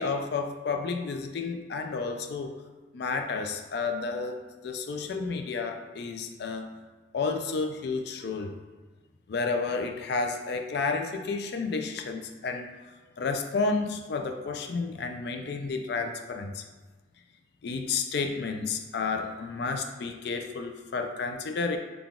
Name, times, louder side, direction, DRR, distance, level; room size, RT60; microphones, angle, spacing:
voice 1, 0.0-2.5 2.9-6.8 7.1-8.6 9.3-12.7 13.2-16.6 17.6-21.8, left 4 dB, 55° left, 5 dB, 0.4 m, -31 dB
3.9 x 2.3 x 3.5 m, 1.3 s
head